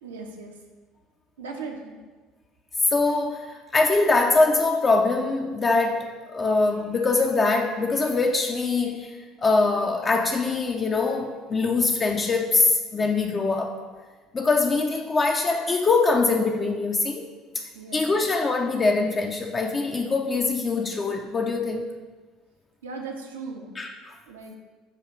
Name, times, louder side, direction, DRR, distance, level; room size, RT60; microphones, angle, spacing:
voice 1, 0.0-0.5 1.4-1.9 17.7-18.3 22.8-23.8 24.3-24.6, right 4 dB, 75° right, 2 dB, 0.6 m, -38 dB
voice 2, 2.9-13.8 14.3-17.3 17.9-21.9 23.8-24.1, left 3 dB, 30° left, 2 dB, 0.4 m, -23 dB
7.3 x 2.4 x 5.3 m, 1.4 s
figure-of-eight pair, 60°, 0 cm